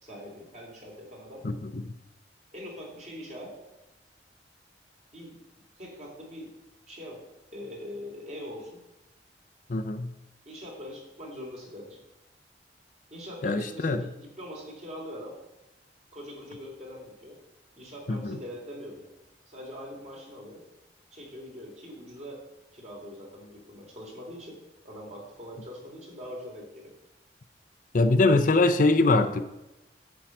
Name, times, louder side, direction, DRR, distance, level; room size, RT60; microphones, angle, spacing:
voice 1, 0.0-1.4 2.5-3.5 5.1-5.4 5.8-6.5 6.9-7.2 7.5-8.8 10.4-12.0 13.1-15.3 16.1-17.4 17.7-19.1 19.5-20.6 21.1-22.4 22.7-24.6 24.8-26.9, equal, 40° right, 3.1 m, -42 dB
voice 2, 1.4-1.8 9.7-10.1 13.4-14.0 18.1-18.4 27.9-29.4, left 2 dB, 50° left, 0.6 m, -23 dB
10.0 x 4.7 x 7.7 m
head